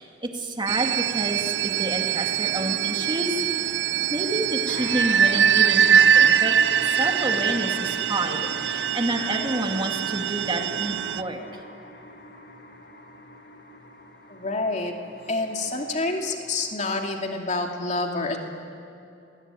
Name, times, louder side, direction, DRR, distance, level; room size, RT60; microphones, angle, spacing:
voice 1, 0.0-3.4 4.1-6.5 6.9-11.4, right 1 dB, 25° right, 2 dB, 2.6 m, -29 dB
sound 1, 0.7-11.2, right 8 dB, 75° right, 0.6 m, -23 dB
sound 2, 4.7-16.7, left 1 dB, 65° left, 2.4 m, -41 dB
voice 2, 14.3-14.9 15.3-18.4, left 2 dB, 40° left, 2 dB, 2.7 m, -28 dB
29.0 x 20.5 x 9.4 m, 2.7 s
head